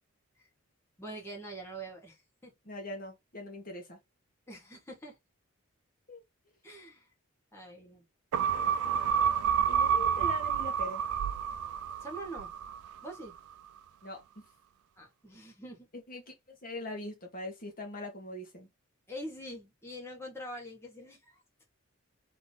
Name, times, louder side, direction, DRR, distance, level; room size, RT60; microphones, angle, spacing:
voice 1, 1.0-2.5 4.5-5.2 6.6-7.1 7.5-8.0 12.0-12.5 13.0-13.3 15.0-15.9 19.1-21.4, right 1 dB, 10° left, 1.3 m, -44 dB
voice 2, 2.6-4.0 6.1-6.2 9.7-11.0 14.0-14.2 16.1-18.7, left 1 dB, 40° left, 1.2 m, -41 dB
sound 1, 8.3-13.0 13.4-13.5, right 8 dB, 90° right, 0.3 m, -29 dB
3.5 x 2.9 x 3.9 m
head